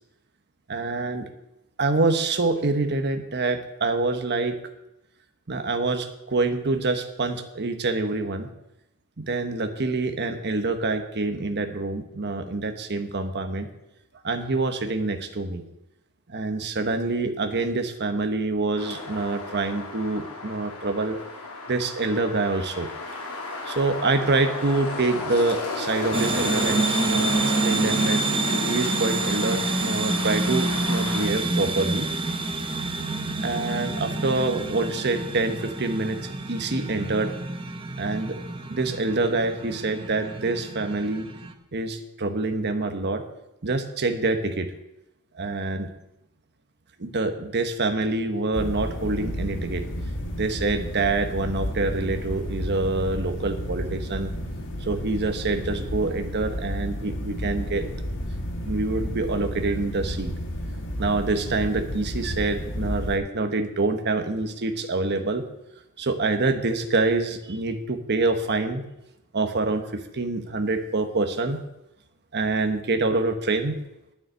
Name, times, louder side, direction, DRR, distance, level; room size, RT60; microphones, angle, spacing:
voice 1, 0.7-1.3 1.8-4.5 5.5-8.5 9.2-13.7 14.2-15.6 16.3-21.2 21.7-22.9 23.6-28.2 28.7-32.1 33.4-37.3 38.0-38.3 38.7-41.3 41.7-43.2 43.6-44.7 45.3-45.9 47.0-54.3 54.8-57.8 58.6-60.3 61.0-65.4 66.0-68.8 69.3-69.8 70.1-71.6 72.3-73.7, right 3 dB, 50° right, 7 dB, 1.1 m, -26 dB
sound 1, 18.8-31.3, left 2 dB, 80° left, 2.7 m, -33 dB
sound 2, 26.1-41.5, right 2 dB, 25° right, 0.9 m, -27 dB
sound 3, 48.5-63.2, equal, 60° left, 1.5 m, -32 dB
9.6 x 7.2 x 9.0 m, 0.90 s
head